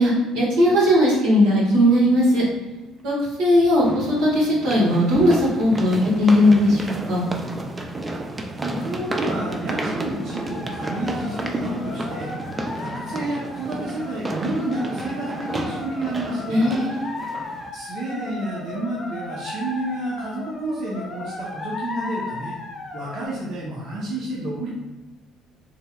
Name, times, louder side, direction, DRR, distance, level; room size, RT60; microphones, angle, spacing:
voice 1, 0.0-2.4 3.0-7.2 16.5-17.1, left 1 dB, 85° right, -6 dB, 1.4 m, -18 dB
sound 1, 1.9-2.0 3.8-17.7, right 2 dB, 25° right, 0.4 m, -32 dB
voice 2, 8.6-12.3 12.8-16.7 17.7-22.5 22.9-24.7, right 1 dB, 65° right, -5 dB, 0.7 m, -30 dB
sound 2, 10.0-23.3, left 2 dB, 30° left, 0.7 m, -36 dB
3.4 x 3.2 x 2.2 m, 1.1 s
cardioid pair, 90°, 0 cm